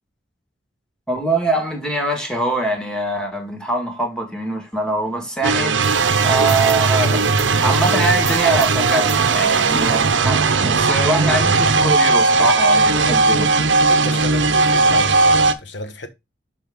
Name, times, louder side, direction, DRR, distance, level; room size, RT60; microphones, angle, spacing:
voice 1, 1.1-7.3 7.6-13.5, right 2 dB, 5° left, 1.5 m, -23 dB
sound 1, 5.4-15.5, right 3 dB, 80° right, 0.8 m, -17 dB
sound 2, 5.8-10.5, right 5 dB, 15° right, 0.5 m, -35 dB
voice 2, 13.9-16.1, left 1 dB, 70° left, 1.1 m, -31 dB
6.0 x 5.5 x 3.5 m
head